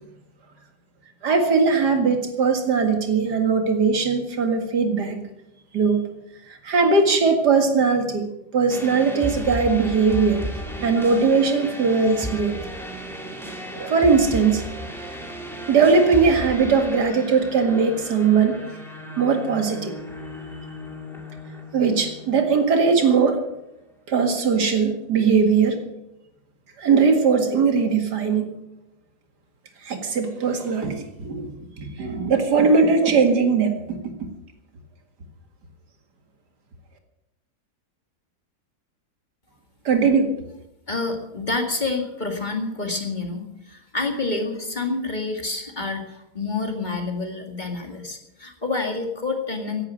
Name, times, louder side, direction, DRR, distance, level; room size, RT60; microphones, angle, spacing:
voice 1, 1.2-5.2 5.7-6.0 6.6-8.3 8.5-10.4 10.8-12.5 13.7-14.6 15.7-18.6 19.2-19.9 21.7-23.4 24.1-25.8 26.8-28.5 29.8-31.5 31.8-34.1 39.9-40.3, right 5 dB, 80° right, 5 dB, 2.6 m, -20 dB
sound 1, 8.7-23.4, equal, ahead, 2.6 m, -35 dB
voice 2, 40.9-49.8, left 3 dB, 30° left, 3 dB, 2.0 m, -28 dB
17.0 x 10.5 x 6.3 m, 0.89 s
omnidirectional pair, 1.7 m